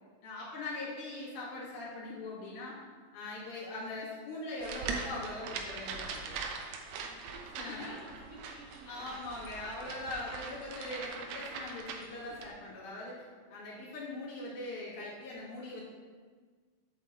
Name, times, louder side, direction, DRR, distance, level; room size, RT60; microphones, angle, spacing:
voice 1, 0.2-2.8 3.1-6.3 7.6-7.9 8.9-13.2 13.5-15.8, left 2 dB, 75° left, -7 dB, 3.7 m, -41 dB
sound 1, 4.6-12.5, right 5 dB, 75° right, 1.9 m, -42 dB
voice 2, 7.0-9.3, right 1 dB, 40° right, -9 dB, 1.1 m, -52 dB
7.9 x 7.4 x 2.8 m, 1.5 s
omnidirectional pair, 4.2 m